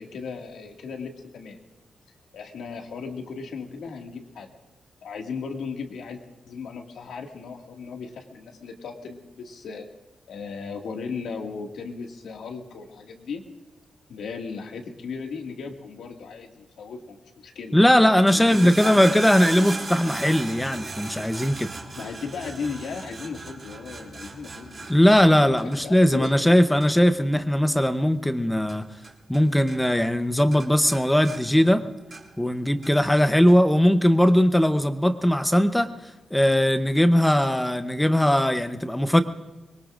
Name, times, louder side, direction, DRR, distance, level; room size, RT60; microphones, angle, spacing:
voice 1, 0.0-1.6 2.3-4.5 5.0-9.9 10.3-13.4 14.1-17.7 18.5-19.0 22.0-24.9 25.7-26.4, left 5 dB, 85° left, 2 dB, 2.0 m, -36 dB
voice 2, 17.7-21.7 24.9-28.8 29.3-31.8 32.4-39.2, equal, 5° left, 9 dB, 0.8 m, -19 dB
sound 1, 18.0-29.4 29.7-30.2 30.5-32.5 32.8-33.6 34.3-34.4, right 3 dB, 40° right, 2.3 m, -37 dB
24.5 x 22.0 x 2.5 m, 1.1 s
wide cardioid pair, 150°, 0 cm